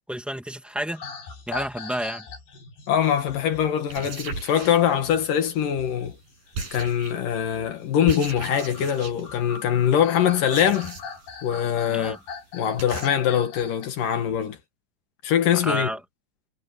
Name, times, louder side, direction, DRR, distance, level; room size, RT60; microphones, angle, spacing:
voice 1, 0.1-1.0 1.5-2.2 11.9-12.2 15.6-16.0, right 1 dB, ahead, 0.5 m, -30 dB
sound 1, 0.9-13.9 14.3-14.6, left 5 dB, 80° left, 7.0 m, -42 dB
voice 2, 2.9-6.1 6.7-11.0 11.4-12.2 12.5-14.6 15.2-15.9, left 9 dB, 65° left, 3.1 m, -23 dB
sound 2, 3.0-3.2 3.8-5.3 6.5-7.4 8.1-9.4 10.4-11.3 11.6-11.7 12.0-12.1 12.3-12.4 12.8-13.1, right 4 dB, 60° right, 9.0 m, -36 dB
omnidirectional pair, 4.5 m